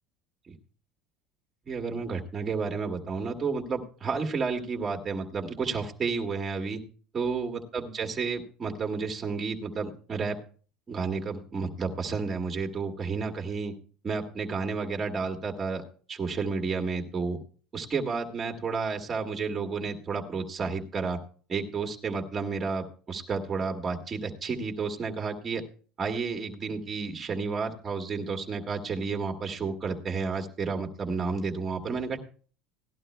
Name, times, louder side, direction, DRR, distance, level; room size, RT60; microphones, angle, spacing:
voice 1, 1.7-6.8 7.1-10.4 10.9-13.7 14.0-17.4 17.7-21.2 21.5-25.6 26.0-32.2, right 4 dB, 25° right, 3 dB, 1.9 m, -31 dB
18.0 x 12.0 x 2.2 m, 0.40 s
supercardioid pair, 125°, 0 cm